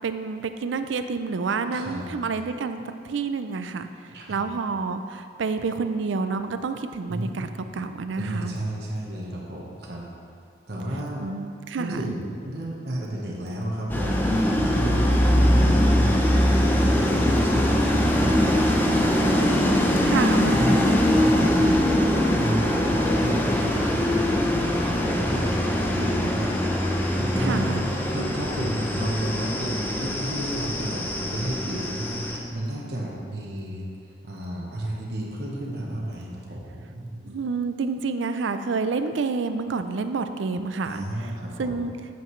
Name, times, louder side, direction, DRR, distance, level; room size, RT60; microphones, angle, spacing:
voice 1, 0.0-8.6 11.2-12.1 20.0-20.6 27.4-27.8 37.2-41.3 41.6-41.9, right 4 dB, 85° right, 9 dB, 0.4 m, -29 dB
voice 2, 1.7-2.1 4.1-4.4 7.1-7.6 8.1-10.0 10.7-11.2 11.7-16.3 16.7-19.5 20.5-20.8 21.1-21.7 22.3-26.5 27.1-37.2 40.8-41.8, right 1 dB, 60° right, -3 dB, 1.2 m, -32 dB
sound 1, 13.9-32.4, left 1 dB, 10° left, 0.6 m, -22 dB
8.3 x 7.9 x 3.2 m, 2.3 s
head